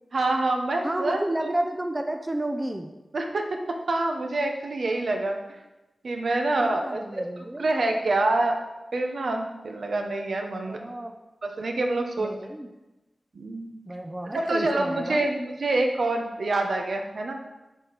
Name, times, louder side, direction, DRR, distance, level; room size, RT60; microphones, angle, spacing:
voice 1, 0.1-1.5 3.1-5.6 6.0-7.2 7.6-8.6 8.9-10.8 11.4-12.3 13.3-13.7 14.3-17.4, right 2 dB, 70° right, 3 dB, 0.8 m, -26 dB
voice 2, 0.8-2.9 6.5-7.7 10.6-11.2 12.2-12.7 13.9-15.3, right 1 dB, 20° right, 5 dB, 0.5 m, -31 dB
7.9 x 4.4 x 4.0 m, 1.0 s
wide cardioid pair, 85°, 0 cm